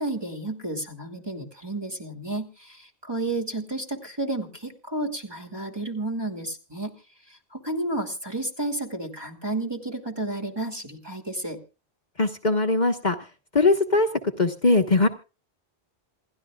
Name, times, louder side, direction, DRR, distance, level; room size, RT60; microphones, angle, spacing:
voice 1, 0.0-6.9 7.3-11.6, right 2 dB, 25° right, 3 dB, 2.7 m, -31 dB
voice 2, 12.2-13.1 13.5-14.1 14.4-15.1, left 3 dB, 45° left, 4 dB, 1.4 m, -20 dB
27.5 x 12.0 x 2.4 m, 0.32 s
omnidirectional pair, 1.1 m